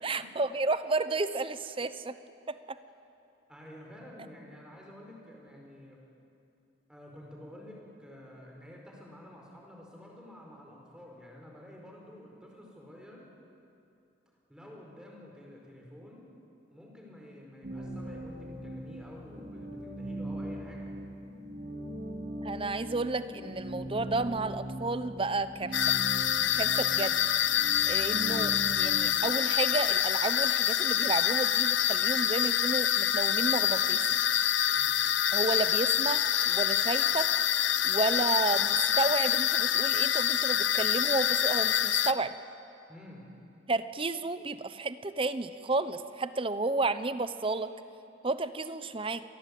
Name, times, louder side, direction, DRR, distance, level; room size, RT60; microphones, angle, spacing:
voice 1, 0.0-2.2 2.5-2.8 22.4-25.8 26.5-27.2 27.9-34.1 35.3-37.3 37.8-42.3 43.7-47.7 48.2-49.2, right 3 dB, 30° right, 13 dB, 0.8 m, -32 dB
voice 2, 3.5-6.0 6.9-13.2 14.5-16.2 16.7-21.0 34.6-34.9 42.9-43.3, left 1 dB, 5° right, -1 dB, 4.9 m, -50 dB
sound 1, 17.6-29.1, right 1 dB, 60° right, 3.8 m, -40 dB
sound 2, 25.7-42.1, left 10 dB, 70° left, 0.8 m, -26 dB
27.0 x 18.5 x 8.5 m, 2.7 s
head